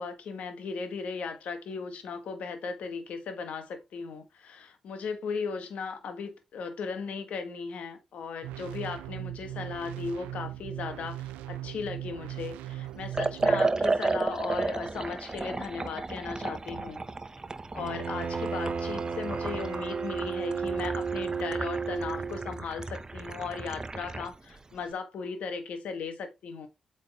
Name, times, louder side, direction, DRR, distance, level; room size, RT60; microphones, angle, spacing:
voice 1, 0.0-17.0 17.7-26.7, left 5 dB, 70° left, 1.4 m, -37 dB
sound 1, 8.4-13.7, right 14 dB, 90° right, 0.4 m, -39 dB
Liquid, 13.1-24.3, right 3 dB, 30° right, 0.7 m, -33 dB
Bowed string instrument, 17.8-22.6, right 5 dB, 55° right, 1.4 m, -33 dB
7.8 x 4.1 x 3.5 m
supercardioid pair, 45°, 2 cm